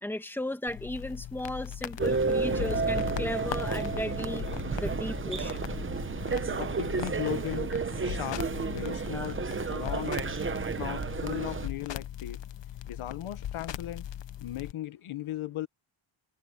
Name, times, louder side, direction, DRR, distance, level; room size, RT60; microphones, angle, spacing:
voice 1, 0.0-4.5 4.7-5.6, left 1 dB, 5° left, 1.7 m, -35 dB
sound 1, 0.7-14.7, left 11 dB, 60° left, 1.0 m, -39 dB
sound 2, 2.0-11.7, right 4 dB, 25° right, 0.9 m, -31 dB
voice 2, 6.5-7.7 8.0-10.2 10.8-12.4 12.9-14.0 14.4-15.7, left 13 dB, 90° left, 1.3 m, -37 dB
wide cardioid pair, 140°, 48 cm